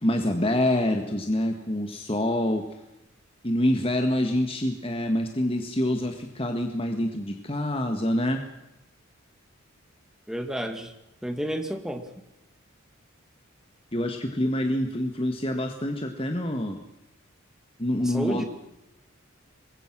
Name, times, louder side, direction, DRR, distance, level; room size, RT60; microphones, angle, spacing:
voice 1, 0.0-2.6 3.4-8.4 13.9-16.8 17.8-18.4, left 1 dB, 25° left, 5 dB, 1.7 m, -26 dB
voice 2, 10.3-10.9 11.2-12.1 18.0-18.4, equal, 5° right, 5 dB, 2.2 m, -31 dB
25.0 x 22.0 x 6.2 m, 0.92 s
head